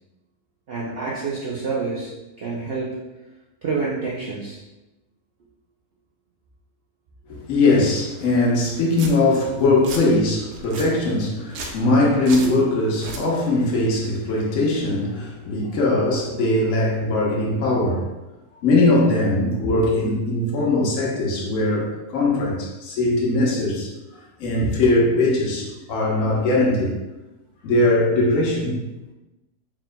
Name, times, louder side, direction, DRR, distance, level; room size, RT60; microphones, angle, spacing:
voice 1, 0.7-2.1 2.4-2.9 3.6-4.6, right 4 dB, 65° right, -6 dB, 0.6 m, -27 dB
voice 2, 7.3-18.1 18.6-26.9 27.6-28.7, left 2 dB, 60° left, -3 dB, 1.2 m, -20 dB
Domestic sounds home sounds, 8.6-8.7 9.0-9.1 9.6-10.0 10.5-10.9 11.5-11.8 12.3-12.5 12.9-13.2, right 3 dB, 90° right, 1.2 m, -33 dB
4.5 x 3.5 x 2.2 m, 1.0 s
omnidirectional pair, 1.7 m